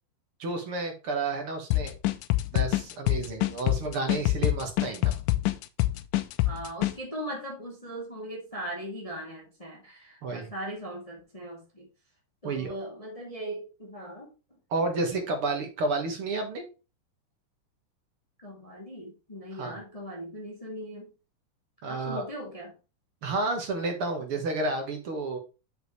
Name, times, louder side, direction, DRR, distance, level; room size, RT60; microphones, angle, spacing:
voice 1, 0.4-1.9 2.5-5.2 10.2-10.5 12.4-12.7 14.7-16.6 19.6-19.8 21.8-22.3 23.2-25.4, right 3 dB, 50° right, 4 dB, 2.1 m, -31 dB
sound 1, 1.7-6.9, left 17 dB, 85° left, 2.1 m, -26 dB
voice 2, 6.4-11.9 12.4-14.3 15.0-15.2 18.4-21.1 21.9-22.8, right 1 dB, 10° left, -3 dB, 2.3 m, -39 dB
8.0 x 6.5 x 3.3 m, 0.30 s
omnidirectional pair, 3.7 m